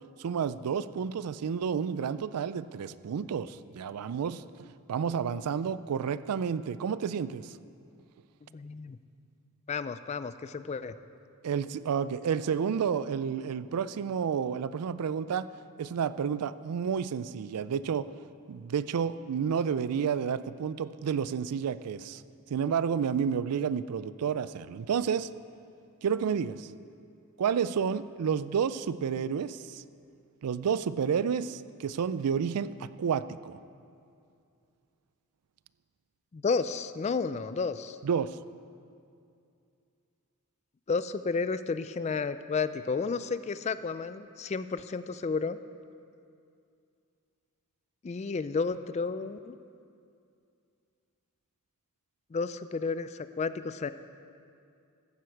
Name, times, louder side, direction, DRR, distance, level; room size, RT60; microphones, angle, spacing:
voice 1, 0.2-7.5 11.4-15.5 15.8-18.1 18.5-22.2 22.5-25.3 26.0-26.7 27.4-29.8 30.4-33.6 38.0-38.4, right 7 dB, 90° right, 15 dB, 0.4 m, -30 dB
voice 2, 8.5-9.0 9.7-10.9 36.3-38.0 40.9-45.6 48.0-49.6 52.3-53.9, left 4 dB, 30° left, 13 dB, 0.3 m, -32 dB
14.5 x 9.6 x 4.6 m, 2.4 s
head